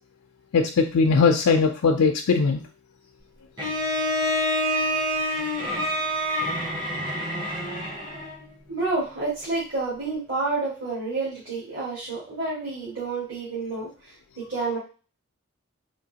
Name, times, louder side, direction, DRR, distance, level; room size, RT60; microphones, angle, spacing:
voice 1, 0.5-2.6, left 4 dB, 80° left, 4 dB, 0.4 m, -20 dB
Bowed string instrument, 3.6-8.4, equal, 20° right, 0.7 m, -27 dB
voice 2, 8.7-13.9 14.4-14.8, right 3 dB, 60° right, -8 dB, 1.6 m, -29 dB
3.8 x 2.7 x 2.8 m, 0.35 s
head